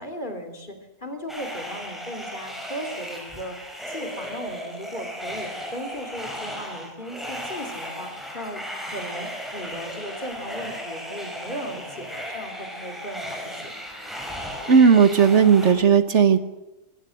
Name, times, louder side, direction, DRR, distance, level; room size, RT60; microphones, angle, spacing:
voice 1, 0.0-3.6 3.9-13.7, equal, 30° left, 5 dB, 3.4 m, -37 dB
sound 1, 1.3-15.7, equal, ahead, 6.0 m, -35 dB
voice 2, 14.7-16.4, right 6 dB, 50° right, 11 dB, 1.5 m, -15 dB
25.0 x 16.5 x 7.8 m, 0.95 s
omnidirectional pair, 1.6 m